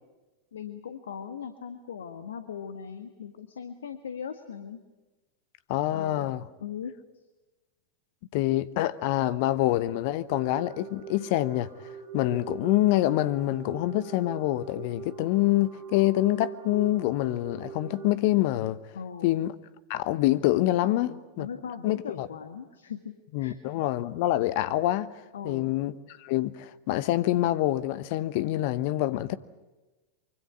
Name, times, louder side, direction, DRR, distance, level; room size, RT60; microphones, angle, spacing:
voice 1, 0.5-4.8 5.9-6.3 6.6-6.9 18.9-19.3 20.8-23.1 23.4-23.6 25.3-25.7, left 7 dB, 65° left, 1.5 m, -39 dB
voice 2, 5.7-6.4 8.3-11.7 12.1-18.8 19.2-19.5 19.9-21.1 21.4-21.5 21.8-22.3 23.3-25.1 25.4-29.3, left 15 dB, 45° left, 1.0 m, -26 dB
sound 1, 10.3-18.1, right 7 dB, 40° right, 4.6 m, -42 dB
24.5 x 24.5 x 8.6 m
figure-of-eight pair, 90°, 0 cm